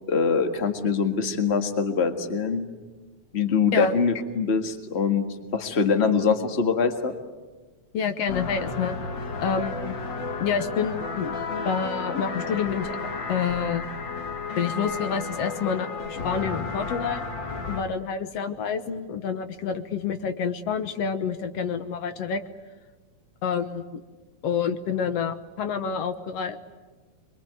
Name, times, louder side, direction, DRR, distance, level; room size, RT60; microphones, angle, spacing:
voice 1, 0.1-2.7 3.3-5.3 5.5-7.1, left 5 dB, 25° left, 7 dB, 1.6 m, -23 dB
voice 2, 7.9-9.0 9.4-10.0 10.4-11.3 11.6-13.0 13.3-13.9 14.6-17.3 17.7-22.4 23.4-24.0 24.4-26.6, left 6 dB, 65° left, 10 dB, 2.1 m, -28 dB
sound 1, 8.3-17.8, left 4 dB, 45° left, 2.2 m, -32 dB
26.0 x 23.5 x 9.4 m, 1.3 s
omnidirectional pair, 3.3 m